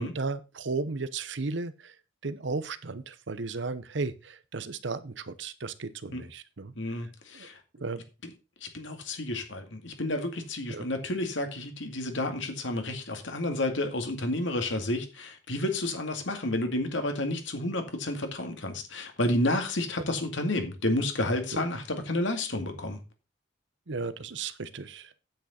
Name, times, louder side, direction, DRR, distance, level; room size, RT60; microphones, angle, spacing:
voice 1, 0.0-1.9 2.2-6.7 7.3-7.5 7.8-8.0 10.7-10.9 21.5-21.7 23.9-25.2, right 3 dB, 70° right, 14 dB, 0.8 m, -35 dB
voice 2, 6.8-7.6 8.2-8.3 8.6-23.0, left 1 dB, 75° left, 5 dB, 2.2 m, -30 dB
9.0 x 8.3 x 4.2 m, 0.30 s
head